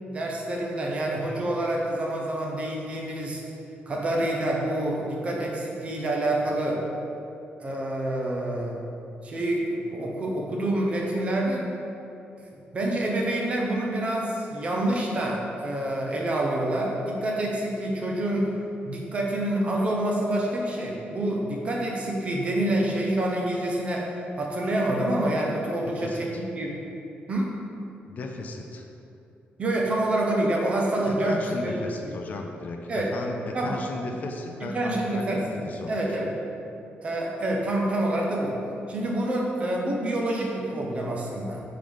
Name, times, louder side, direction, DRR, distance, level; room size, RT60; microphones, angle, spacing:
voice 1, 0.1-3.4 3.9-6.8 7.6-8.7 9.2-11.7 12.7-18.5 18.8-26.8 27.3-27.6 29.6-31.9 32.9-33.1 33.5-33.8 34.7-36.3 37.0-38.6 38.9-41.6, right 1 dB, 30° right, -2 dB, 0.8 m, -27 dB
voice 2, 25.8-26.4 28.1-28.9 31.1-36.1, left 3 dB, 45° left, 3 dB, 0.4 m, -36 dB
5.1 x 3.8 x 5.1 m, 2.8 s
wide cardioid pair, 180°, 4 cm